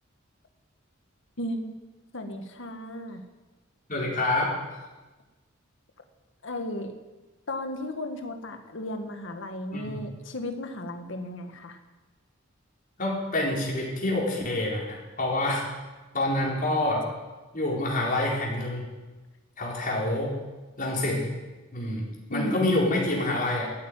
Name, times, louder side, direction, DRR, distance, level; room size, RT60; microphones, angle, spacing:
voice 1, 1.4-1.7 2.1-3.2 6.4-6.9 7.5-11.8 22.3-22.8, left 1 dB, 65° left, 6 dB, 1.7 m, -35 dB
voice 2, 3.9-4.6 9.7-10.0 13.0-15.7 16.1-17.0 17.5-18.8 19.6-20.4 20.8-21.3 21.7-23.7, left 1 dB, 40° left, -3 dB, 4.4 m, -27 dB
14.0 x 9.2 x 9.2 m, 1.2 s
head